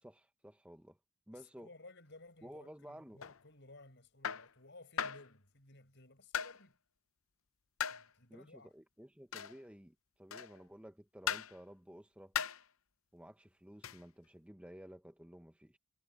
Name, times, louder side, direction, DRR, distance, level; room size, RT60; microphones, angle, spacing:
voice 1, 0.0-1.0 1.3-1.7 2.4-3.2 8.3-12.3 13.1-15.8, equal, 5° right, 1.0 m, -54 dB
voice 2, 1.3-6.8 7.9-8.7, left 2 dB, 55° left, 7.0 m, -58 dB
sound 1, 3.2-3.4 4.2-4.5 5.0-5.3 6.3-6.6 7.8-8.1 9.3-9.6 10.3-10.6 11.3-11.6 12.3-12.6 13.8-14.0, left 8 dB, 75° left, 0.7 m, -38 dB
head